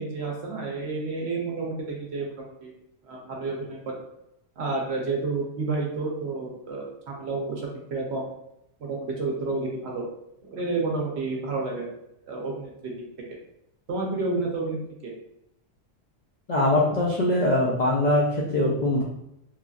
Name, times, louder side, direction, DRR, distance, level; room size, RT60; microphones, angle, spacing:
voice 1, 0.0-2.7 3.1-3.9 4.6-7.6 7.9-8.3 8.8-10.0 10.4-11.9 12.3-12.9 13.9-15.1, right 3 dB, 60° right, -1 dB, 0.8 m, -30 dB
voice 2, 16.5-19.0, left 1 dB, 65° left, -4 dB, 0.4 m, -22 dB
3.1 x 2.5 x 2.3 m, 0.81 s
omnidirectional pair, 1.4 m